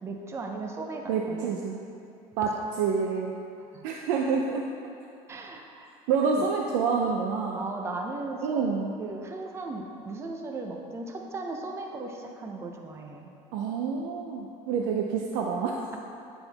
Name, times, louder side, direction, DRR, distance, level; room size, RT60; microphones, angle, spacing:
voice 1, 0.0-1.5 3.7-3.9 5.3-5.9 6.4-6.5 7.6-8.7 9.0-13.3, right 3 dB, 20° right, 2 dB, 0.5 m, -37 dB
voice 2, 1.1-1.8 2.4-3.4 3.8-4.6 6.1-7.6 8.4-8.9 13.5-16.0, right 5 dB, 90° right, 0 dB, 0.5 m, -28 dB
9.1 x 3.6 x 3.4 m, 2.7 s
cardioid pair, 155°, 13 cm